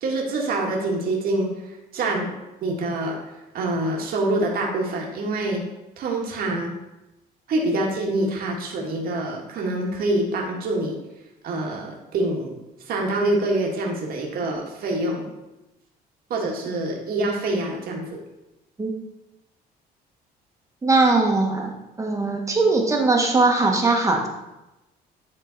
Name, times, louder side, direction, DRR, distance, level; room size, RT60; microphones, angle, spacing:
voice 1, 0.0-2.3 2.6-3.2 3.5-5.6 6.0-6.8 7.5-11.0 11.4-15.3 16.3-18.2, right 2 dB, 60° right, -1 dB, 1.6 m, -26 dB
voice 2, 20.8-21.7 22.0-24.3, right 3 dB, 20° right, 1 dB, 1.3 m, -20 dB
9.8 x 3.8 x 3.9 m, 0.97 s
cardioid pair, 110°, 17 cm